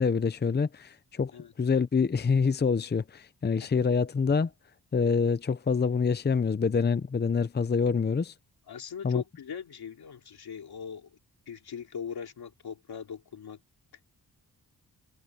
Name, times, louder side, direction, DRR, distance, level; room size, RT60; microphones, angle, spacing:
voice 1, 0.0-1.3 1.6-4.5 4.9-8.3 9.0-9.2, left 5 dB, 25° left, 0.6 m, -26 dB
voice 2, 8.7-11.1 11.5-13.6, left 7 dB, 80° left, 3.0 m, -40 dB
wide cardioid pair, 110°, 37 cm